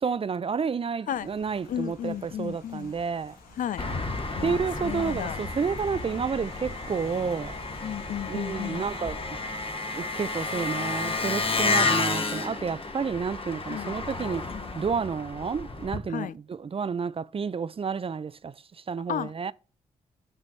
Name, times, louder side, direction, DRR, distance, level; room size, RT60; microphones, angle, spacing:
voice 1, 0.0-3.4 4.4-7.5 8.3-9.4 9.9-14.5 14.7-18.5 18.9-19.5, right 6 dB, 40° right, 0.5 m, -30 dB
Rain, 1.1-9.7, left 3 dB, 85° left, 1.5 m, -50 dB
voice 2, 1.7-2.9 3.6-3.9 4.4-5.4 7.8-8.8 13.7-13.9 14.5-14.6 16.1-16.3 19.1-19.3, left 10 dB, 65° left, 0.4 m, -33 dB
Engine, 3.8-16.0, left 3 dB, 40° left, 1.4 m, -31 dB
6.0 x 5.5 x 3.9 m
supercardioid pair, 40°, 15 cm